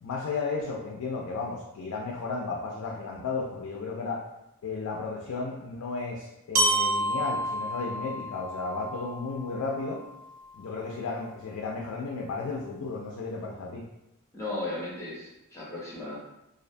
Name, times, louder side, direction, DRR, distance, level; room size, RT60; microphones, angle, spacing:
voice 1, 0.0-4.2 4.6-10.0 10.5-13.8, left 4 dB, 70° left, -2 dB, 0.3 m, -34 dB
Glockenspiel, 6.5-10.5, right 1 dB, 70° right, 0.6 m, -30 dB
voice 2, 14.3-16.2, left 2 dB, 15° left, -6 dB, 0.5 m, -35 dB
2.4 x 2.2 x 2.5 m, 0.88 s
head